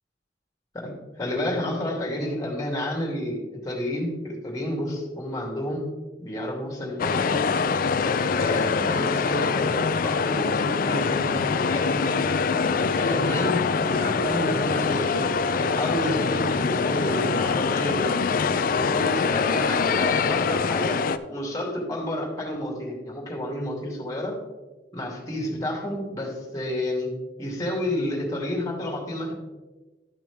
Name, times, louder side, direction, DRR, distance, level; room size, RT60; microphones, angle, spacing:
voice 1, 0.7-5.9 6.2-7.4 8.3-12.2 12.7-15.1 15.5-21.0 21.3-24.4 24.9-27.1 27.4-29.3, left 1 dB, 20° left, -2 dB, 2.5 m, -30 dB
sound 1, 7.0-21.2, left 5 dB, 50° left, 0.4 m, -24 dB
13.0 x 6.1 x 3.5 m, 1.2 s
head